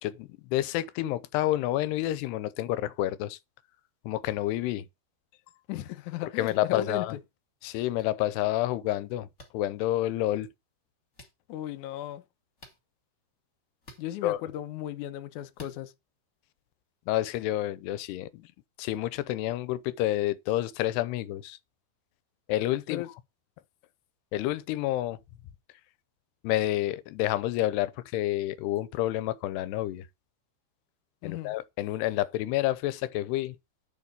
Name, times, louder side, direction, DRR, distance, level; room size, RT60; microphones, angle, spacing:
voice 1, 0.0-3.4 4.1-4.9 6.4-7.1 7.6-9.3 9.5-10.5 14.2-14.4 17.1-18.5 18.8-21.6 22.5-23.0 24.3-25.2 26.4-30.1 31.2-33.6, left 14 dB, 90° left, 2.8 m, -29 dB
voice 2, 5.7-7.2 11.5-12.2 14.0-15.9 22.9-23.1 31.2-31.6, left 12 dB, 65° left, 2.0 m, -35 dB
sound 1, 6.4-6.7 7.9-8.0 9.4-9.5 11.1-11.3 12.6-12.8 13.8-14.0 15.5-15.8, left 2 dB, 30° left, 1.4 m, -49 dB
9.8 x 4.8 x 6.6 m
omnidirectional pair, 4.7 m